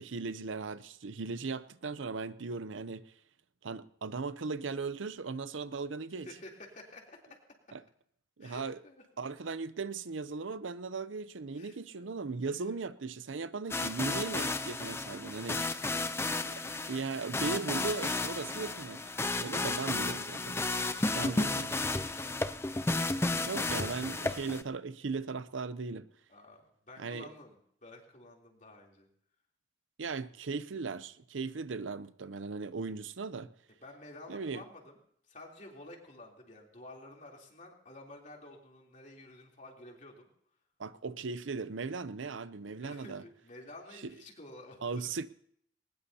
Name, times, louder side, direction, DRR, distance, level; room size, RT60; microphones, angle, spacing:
voice 1, 0.0-3.0 3.6-6.3 7.7-7.8 8.4-8.8 9.2-15.8 16.5-16.6 16.9-19.0 19.4-20.6 21.1-21.7 23.4-26.1 27.0-27.3 30.0-33.5 34.3-34.6 40.8-43.2 44.8-45.3, right 4 dB, 85° right, 0.7 m, -37 dB
voice 2, 6.2-7.4 8.4-9.0 11.5-12.6 15.1-15.5 20.9-21.7 22.0-22.3 26.3-29.1 33.8-35.0 35.3-40.3 42.8-45.0, left 2 dB, 40° left, 3.4 m, -51 dB
sound 1, 13.7-24.6, left 2 dB, 15° left, 0.5 m, -33 dB
21.0 x 20.0 x 2.8 m
head